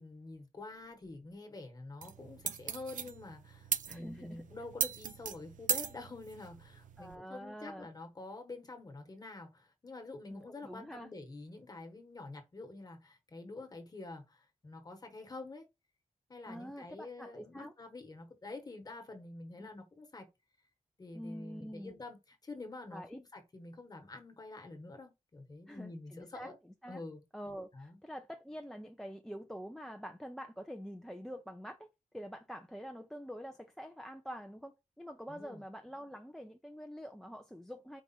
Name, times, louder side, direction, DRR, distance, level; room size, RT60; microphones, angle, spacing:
voice 1, 0.0-15.7 16.3-20.3 21.0-26.6 26.9-27.2 27.7-28.0 35.3-35.6, left 2 dB, 30° left, 1.2 m, -47 dB
sound 1, 2.0-7.2, right 8 dB, 85° right, 0.5 m, -38 dB
voice 2, 3.9-4.4 7.0-7.9 10.3-11.1 16.5-17.7 19.6-19.7 21.1-21.9 22.9-23.2 25.7-27.0 27.3-31.9 32.1-38.0, equal, 5° left, 0.4 m, -46 dB
4.7 x 2.4 x 4.0 m
wide cardioid pair, 155°, 13 cm